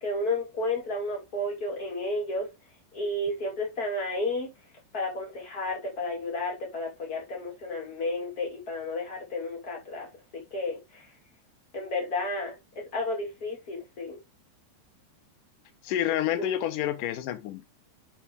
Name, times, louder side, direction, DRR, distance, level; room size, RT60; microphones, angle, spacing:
voice 1, 0.0-2.5 2.9-4.5 4.9-10.1 10.5-11.1 11.7-12.5 12.9-14.2 16.4-16.5, left 2 dB, 25° left, 2.5 m, -32 dB
voice 2, 15.8-17.7, left 12 dB, 70° left, 2.2 m, -28 dB
6.8 x 5.9 x 3.5 m
omnidirectional pair, 4.8 m